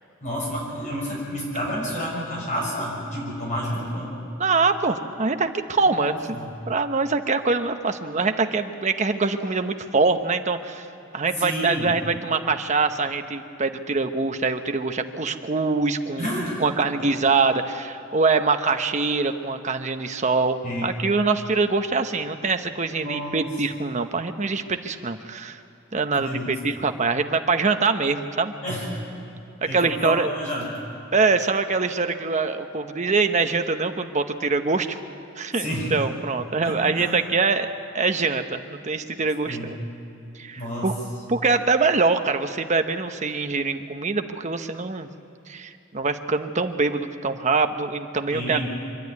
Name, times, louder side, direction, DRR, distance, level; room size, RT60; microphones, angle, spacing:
voice 1, 0.2-4.2 6.0-6.5 11.4-11.9 16.2-16.6 20.6-20.9 23.0-23.5 26.1-26.5 28.6-28.9 29.7-30.8 35.6-35.9 36.6-37.2 39.4-39.7 40.6-40.9 48.3-48.7, equal, 40° left, -4 dB, 6.6 m, -30 dB
voice 2, 4.4-6.4 6.7-10.9 11.1-16.3 16.6-25.6 25.9-28.5 29.6-30.3 31.1-35.0 35.4-39.8 40.3-40.9 41.3-45.1 45.5-48.7, right 4 dB, 35° right, 7 dB, 0.9 m, -24 dB
25.5 x 11.5 x 9.5 m, 2.8 s
head